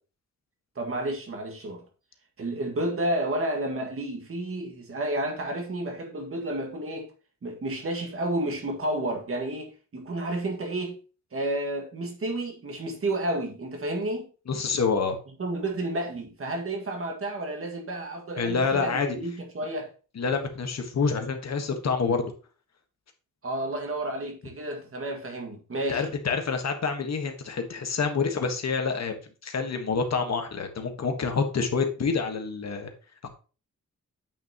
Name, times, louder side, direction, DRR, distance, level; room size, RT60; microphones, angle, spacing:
voice 1, 0.8-1.8 2.4-7.1 7.4-11.0 11.3-14.3 15.4-19.9 23.4-26.1, right 1 dB, 45° right, 1.9 m, -31 dB
voice 2, 14.5-15.1 18.4-19.2 20.1-22.2 25.9-32.9 33.2-33.3, left 5 dB, 55° left, 1.4 m, -27 dB
8.9 x 5.9 x 2.9 m
wide cardioid pair, 165°, 31 cm